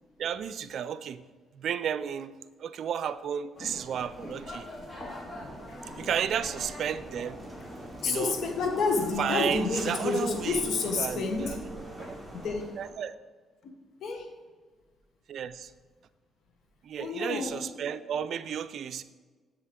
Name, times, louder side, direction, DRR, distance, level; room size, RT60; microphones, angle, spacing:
voice 1, 0.2-1.2 1.5-4.7 6.0-7.4 8.0-8.4 9.2-10.6 11.0-11.6 12.0-12.2 12.8-13.1 15.3-15.7 16.8-19.0, right 8 dB, 65° right, 12 dB, 0.4 m, -33 dB
sound 1, 3.5-12.9, left 1 dB, 35° left, 2.5 m, -45 dB
sound 2, 5.0-12.5, right 1 dB, 10° right, 1.9 m, -45 dB
voice 2, 8.0-11.6 12.3-12.7 14.0-14.3 17.0-17.7, left 4 dB, 70° left, 5 dB, 1.1 m, -29 dB
7.6 x 6.5 x 3.7 m, 1.4 s
cardioid pair, 90°, 0 cm